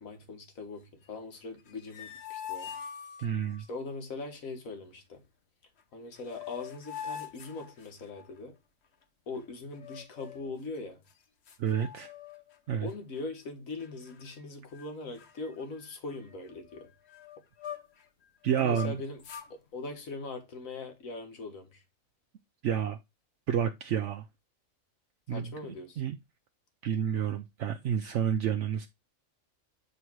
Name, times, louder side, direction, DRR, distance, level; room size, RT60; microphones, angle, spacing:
voice 1, 0.0-2.7 3.7-5.2 5.9-8.5 9.3-11.0 12.8-16.9 18.6-19.2 19.5-21.8 25.3-26.0, left 3 dB, 85° left, 1.7 m, -41 dB
sound 1, 1.6-3.6 5.8-5.9 6.2-8.4 9.7-10.5 11.1-11.2 11.5-12.6 12.9-13.2 13.8-14.4 14.7-14.9 15.2-18.1 18.4-19.5, left 8 dB, 55° left, 1.0 m, -44 dB
voice 2, 3.2-3.6 11.6-12.1 12.7-12.9 18.4-19.0 22.6-23.0 23.5-24.2 25.3-25.6 26.0-26.2 26.8-28.9, right 8 dB, 70° right, 0.9 m, -29 dB
7.9 x 3.2 x 4.5 m
omnidirectional pair, 1.4 m